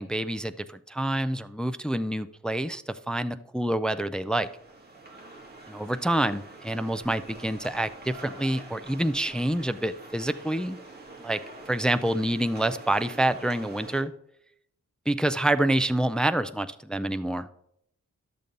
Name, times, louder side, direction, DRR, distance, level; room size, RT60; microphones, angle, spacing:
voice 1, 0.0-4.5 5.7-10.8 11.2-11.4 11.7-14.1 15.1-17.5, right 1 dB, 5° left, 11 dB, 0.3 m, -27 dB
sound 1, 4.2-14.0, right 2 dB, 35° right, 1.8 m, -46 dB
12.0 x 6.8 x 3.9 m, 0.73 s
wide cardioid pair, 140°, 29 cm